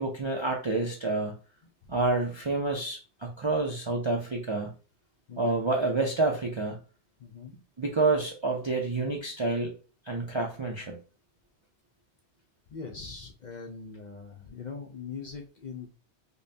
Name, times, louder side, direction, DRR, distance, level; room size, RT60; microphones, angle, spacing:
voice 1, 0.0-1.4 1.9-4.7 5.4-6.8 7.8-9.7 10.1-11.0, right 3 dB, 40° right, 0 dB, 0.4 m, -28 dB
voice 2, 5.3-5.6 7.2-7.5 12.7-15.9, left 5 dB, 55° left, 2 dB, 0.5 m, -41 dB
5.2 x 2.1 x 2.6 m, 0.36 s
omnidirectional pair, 1.2 m